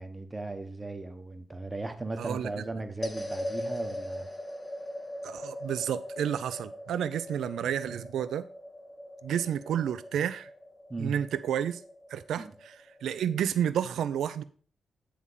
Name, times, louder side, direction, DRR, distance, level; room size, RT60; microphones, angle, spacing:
voice 1, 0.0-4.3 10.9-11.2 12.4-12.5, right 2 dB, 20° right, 1.1 m, -37 dB
voice 2, 2.2-2.6 5.2-8.5 9.2-10.5 11.0-11.8 12.1-14.4, right 9 dB, 85° right, 0.6 m, -31 dB
sound 1, 3.0-13.5, left 1 dB, 25° left, 1.1 m, -40 dB
10.0 x 3.6 x 5.6 m
cardioid pair, 70°, 0 cm